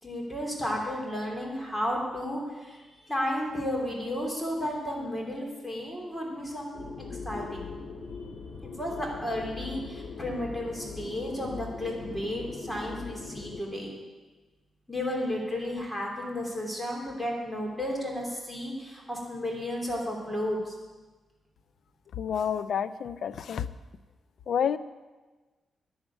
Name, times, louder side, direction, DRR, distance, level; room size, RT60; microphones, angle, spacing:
voice 1, 0.0-7.7 8.8-14.0 14.9-20.7, left 1 dB, 10° left, -2 dB, 3.1 m, -33 dB
sound 1, 6.7-13.6, left 4 dB, 50° left, 1.5 m, -40 dB
voice 2, 22.1-23.7 24.5-24.8, left 8 dB, 75° left, 12 dB, 0.5 m, -29 dB
10.5 x 7.2 x 8.9 m, 1.3 s
cardioid pair, 95°, 0 cm